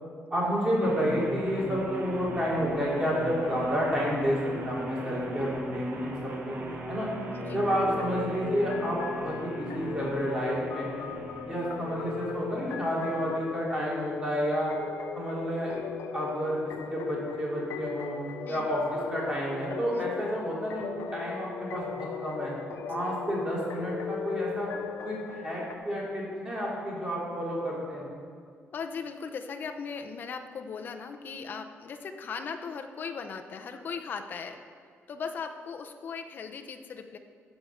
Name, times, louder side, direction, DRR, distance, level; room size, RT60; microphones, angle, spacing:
voice 1, 0.3-6.1 6.4-6.6 6.9-7.1 7.5-10.9 11.4-14.7 15.1-15.8 16.1-16.6 16.9-18.2 18.5-18.8 19.1-22.5 22.9-24.7 25.0-28.0, equal, 15° right, -6 dB, 3.1 m, -30 dB
sound 1, 0.8-13.8, right 1 dB, 45° right, 1.5 m, -39 dB
voice 2, 7.3-7.6 18.4-18.7 19.9-20.1 28.7-34.6 35.1-37.2, left 5 dB, 45° left, 6 dB, 0.8 m, -38 dB
sound 2, 7.4-25.8, left 7 dB, 85° left, 0.7 m, -38 dB
13.5 x 5.0 x 6.8 m, 2.1 s
cardioid pair, 155°, 5 cm